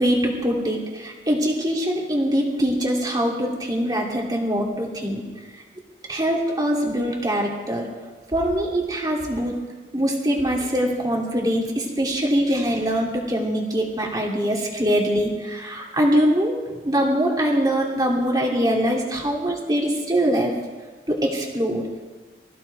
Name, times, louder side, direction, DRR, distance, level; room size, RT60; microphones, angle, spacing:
voice 1, 0.0-5.2 6.1-7.9 8.3-9.6 9.9-16.6 16.8-20.5 21.1-21.9, equal, 20° right, -2 dB, 2.7 m, -23 dB
25.0 x 15.0 x 3.4 m, 1.3 s
head